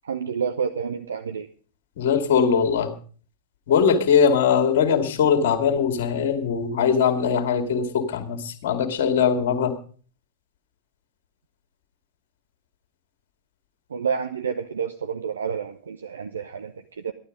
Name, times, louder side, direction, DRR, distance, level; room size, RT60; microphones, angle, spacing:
voice 1, 0.0-1.5 13.9-17.1, right 6 dB, 70° right, 9 dB, 0.8 m, -29 dB
voice 2, 2.0-2.9 3.7-9.7, left 7 dB, 55° left, 7 dB, 2.2 m, -21 dB
14.5 x 11.5 x 5.2 m, 0.42 s
figure-of-eight pair, 90°, 0 cm